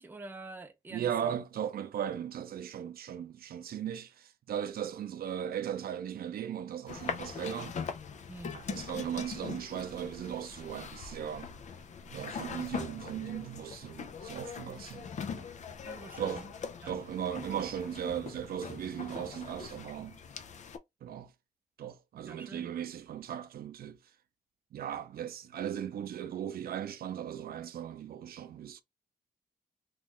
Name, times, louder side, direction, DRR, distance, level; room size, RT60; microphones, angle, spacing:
voice 1, 0.0-1.4 8.3-8.6 15.8-16.4 16.8-17.0 22.2-22.7, right 2 dB, 15° right, 0.4 m, -47 dB
voice 2, 0.9-7.8 8.5-11.5 12.1-15.5 16.2-16.5 16.9-20.2 21.0-21.3 21.8-24.0 24.7-28.8, right 9 dB, 90° right, 0.5 m, -37 dB
sound 1, 6.9-20.8, left 6 dB, 55° left, 0.4 m, -42 dB
3.0 x 2.4 x 3.6 m
wide cardioid pair, 155°, 15 cm